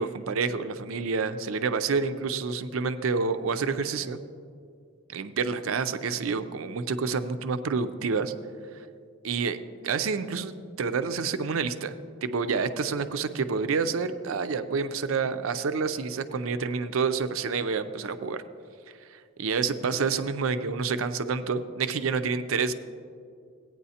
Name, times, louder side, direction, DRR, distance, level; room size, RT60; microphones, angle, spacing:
voice 1, 0.0-4.2 5.1-8.3 9.2-11.9 12.2-18.4 19.1-22.7, right 5 dB, 85° right, 10 dB, 0.5 m, -28 dB
17.0 x 9.2 x 2.8 m, 2.3 s
head